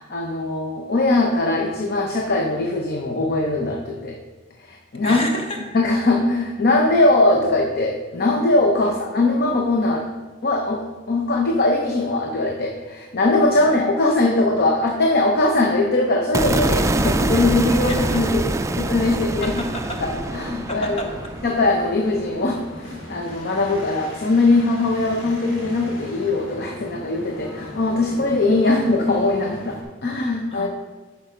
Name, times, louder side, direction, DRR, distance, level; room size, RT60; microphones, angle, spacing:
voice 1, 0.0-4.2 4.6-5.2 5.7-10.1 10.4-18.5 18.7-19.6 20.0-21.1 21.4-30.7, left 2 dB, 55° left, 1 dB, 0.8 m, -21 dB
voice 2, 5.0-5.6 8.8-8.9 13.6-13.7 17.9-18.2 19.6-20.0 20.7-21.0 28.6-28.8 30.5-30.7, left 1 dB, 30° left, 2 dB, 1.3 m, -31 dB
sound 1, 16.3-22.6, right 2 dB, 15° right, 0.3 m, -25 dB
sound 2, 18.4-29.8, left 1 dB, 85° left, 1.8 m, -38 dB
8.8 x 6.0 x 5.0 m, 1.3 s
head